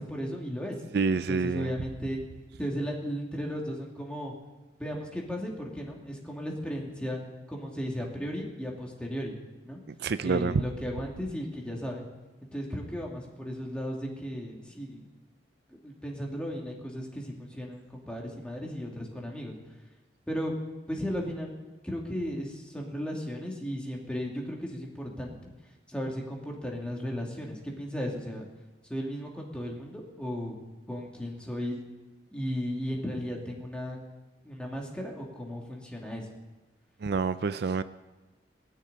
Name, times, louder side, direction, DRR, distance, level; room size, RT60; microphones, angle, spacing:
voice 1, 0.0-0.8 1.3-2.2 2.6-4.3 4.8-7.2 7.5-9.4 9.6-9.8 10.2-12.0 12.5-15.0 15.7-19.6 20.3-20.5 20.9-25.4 25.9-28.5 28.9-30.5 30.9-31.8 32.3-34.0 34.4-36.3, equal, 5° left, -1 dB, 2.5 m, -35 dB
voice 2, 0.9-1.7 10.0-10.6 37.0-37.8, right 4 dB, 60° right, 13 dB, 0.4 m, -27 dB
19.5 x 6.6 x 9.9 m, 1.1 s
head